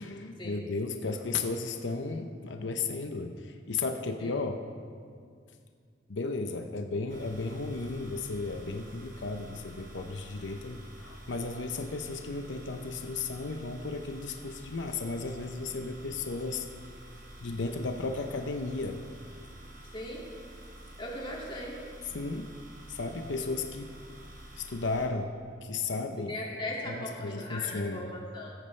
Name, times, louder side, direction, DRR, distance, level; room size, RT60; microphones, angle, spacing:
voice 1, 0.0-4.6 6.1-16.7 17.4-19.0 22.0-22.5 22.9-23.9 24.6-25.3 25.6-26.4 26.9-28.1, left 3 dB, 90° left, 5 dB, 0.7 m, -34 dB
sound 1, 7.1-25.1, right 1 dB, 60° right, 2.6 m, -49 dB
voice 2, 19.9-20.3 21.0-21.8 26.3-28.6, left 1 dB, 30° left, -3 dB, 2.3 m, -38 dB
16.0 x 14.0 x 3.3 m, 2.2 s
head